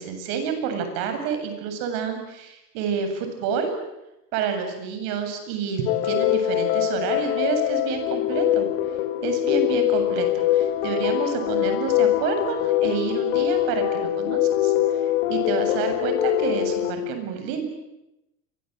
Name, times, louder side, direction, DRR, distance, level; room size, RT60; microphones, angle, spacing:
voice 1, 0.0-3.7 4.3-8.7 9.2-15.0 15.3-17.7, right 6 dB, 60° right, 7 dB, 7.7 m, -29 dB
sound 1, 5.9-16.9, left 13 dB, 70° left, 2.9 m, -23 dB
29.0 x 24.5 x 8.2 m, 0.92 s
supercardioid pair, 140°, 41 cm